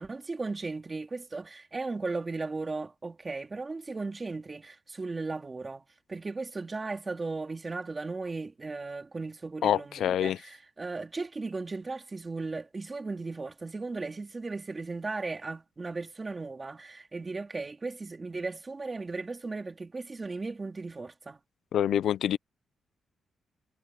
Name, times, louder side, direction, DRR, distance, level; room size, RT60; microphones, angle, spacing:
voice 1, 0.0-21.4, right 3 dB, 25° right, 3.6 m, -36 dB
voice 2, 9.6-10.4 21.7-22.4, left 10 dB, 75° left, 0.4 m, -26 dB
cardioid pair, 125°, 0 cm